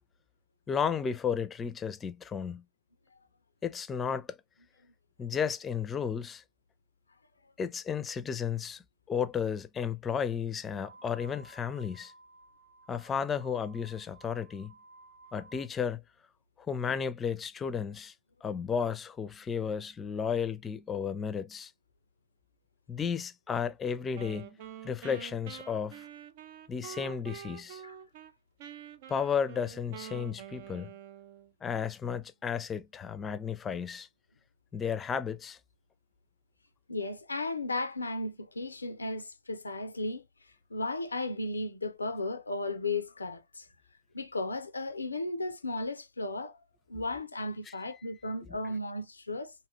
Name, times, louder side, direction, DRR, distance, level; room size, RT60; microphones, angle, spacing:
voice 1, 0.7-2.6 3.6-4.4 5.2-6.4 7.6-8.8 9.1-12.1 12.9-14.7 15.3-16.0 16.6-18.1 18.4-21.7 22.9-24.6 24.8-26.0 26.7-27.8 29.1-30.9 31.6-34.1 34.7-35.6 46.9-47.0 47.7-47.8, left 7 dB, 25° left, 0.5 m, -33 dB
sound 1, 10.7-15.7, right 3 dB, 80° right, 1.0 m, -56 dB
Wind instrument woodwind instrument, 24.1-28.3 28.6-31.5, right 10 dB, 60° right, 0.5 m, -47 dB
voice 2, 36.9-40.3 40.7-43.7 44.1-46.6 46.9-49.5, left 2 dB, 90° left, 0.4 m, -35 dB
2.7 x 2.3 x 3.1 m
figure-of-eight pair, 95°, 0 cm